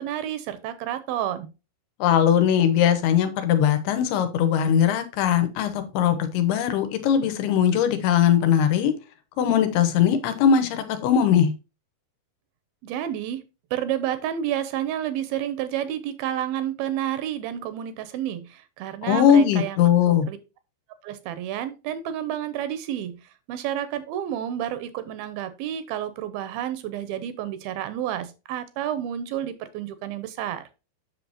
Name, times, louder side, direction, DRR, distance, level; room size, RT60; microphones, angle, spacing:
voice 1, 0.0-1.5 12.8-13.4 13.7-19.8 20.1-20.4 21.0-30.7, right 11 dB, 80° right, 2.4 m, -30 dB
voice 2, 2.0-8.9 9.4-11.5 19.0-20.3, left 8 dB, 85° left, 3.0 m, -20 dB
7.9 x 6.4 x 2.8 m
omnidirectional pair, 4.5 m